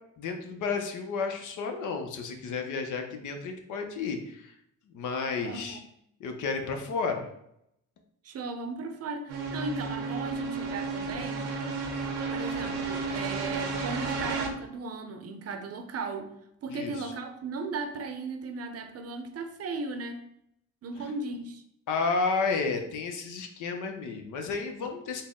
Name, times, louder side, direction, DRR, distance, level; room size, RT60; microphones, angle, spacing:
voice 1, 0.2-4.5 4.9-5.8 6.2-7.3 16.7-17.1 21.0-21.1 21.9-25.2, left 4 dB, 65° left, 4 dB, 0.7 m, -32 dB
voice 2, 5.4-5.8 8.2-11.5 12.3-16.3 16.6-20.2 20.8-21.6, right 3 dB, 50° right, 6 dB, 0.6 m, -36 dB
sound 1, 9.3-14.5, right 4 dB, 85° right, 0.7 m, -32 dB
4.1 x 2.1 x 3.6 m, 0.76 s
supercardioid pair, 60°, 33 cm